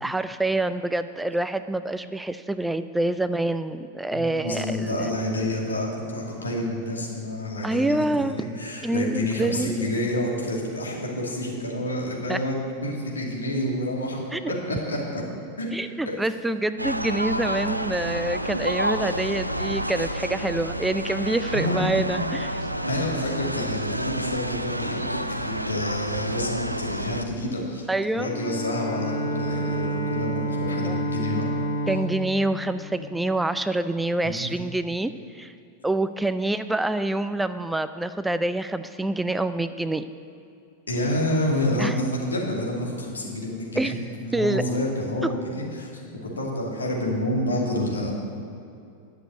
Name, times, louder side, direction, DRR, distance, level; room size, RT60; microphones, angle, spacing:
voice 1, 0.0-5.0 7.6-8.4 8.8-9.7 12.3-12.4 14.3-14.5 15.7-22.6 27.9-28.3 30.8-31.0 31.9-35.5 35.8-40.1 41.8-42.0 43.8-43.9 44.3-44.6, right 2 dB, 5° right, 12 dB, 0.3 m, -26 dB
voice 2, 4.1-15.2 15.6-15.7 16.1-16.2 21.5-21.8 22.8-27.8 28.1-31.5 34.2-34.5 40.9-48.1, left 1 dB, 75° left, -3 dB, 2.6 m, -28 dB
sound 1, 16.8-27.2, equal, 90° right, 0.5 m, -29 dB
Bowed string instrument, 28.2-33.7, equal, 55° left, 1.2 m, -30 dB
11.5 x 6.7 x 8.2 m, 2.6 s
figure-of-eight pair, 90°, 0 cm